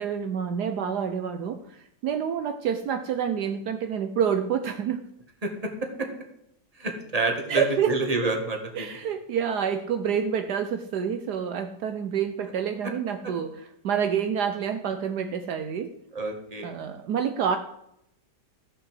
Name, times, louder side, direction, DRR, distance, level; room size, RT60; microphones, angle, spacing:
voice 1, 0.0-5.0 7.5-7.9 8.7-15.9 16.6-17.6, right 7 dB, 70° right, 8 dB, 1.3 m, -28 dB
voice 2, 6.8-8.9 16.1-16.7, right 3 dB, 20° right, 3 dB, 2.0 m, -28 dB
14.5 x 5.7 x 7.7 m, 0.79 s
omnidirectional pair, 1.9 m